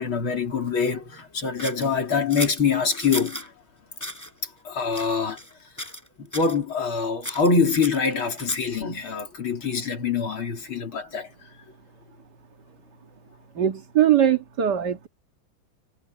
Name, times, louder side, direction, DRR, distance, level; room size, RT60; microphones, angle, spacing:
voice 1, 0.0-3.5 4.4-5.4 6.2-11.3, left 5 dB, 90° left, 4.3 m, -25 dB
sound 1, 1.6-3.5 4.0-4.3 4.9-5.5 5.8-6.1 6.3-6.6 7.2-8.8, equal, 10° left, 8.0 m, -35 dB
voice 2, 13.6-15.1, right 10 dB, 55° right, 2.4 m, -21 dB
omnidirectional pair, 2.2 m